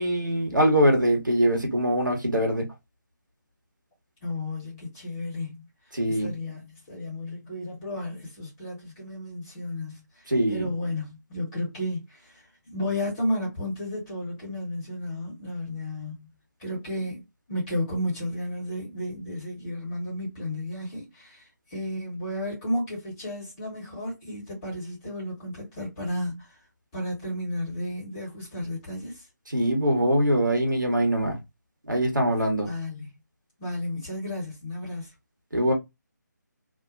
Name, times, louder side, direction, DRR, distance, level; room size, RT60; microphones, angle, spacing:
voice 1, 0.0-2.7 5.9-6.3 10.3-10.7 29.5-31.4 31.9-32.7 35.5-35.7, equal, 85° right, 1.1 m, -23 dB
voice 2, 4.2-5.7 6.0-16.3 16.6-17.2 17.5-26.6 26.9-29.3 32.7-33.1 33.6-35.1, left 1 dB, 15° left, 1.3 m, -33 dB
2.6 x 2.1 x 2.5 m
figure-of-eight pair, 150°, 10 cm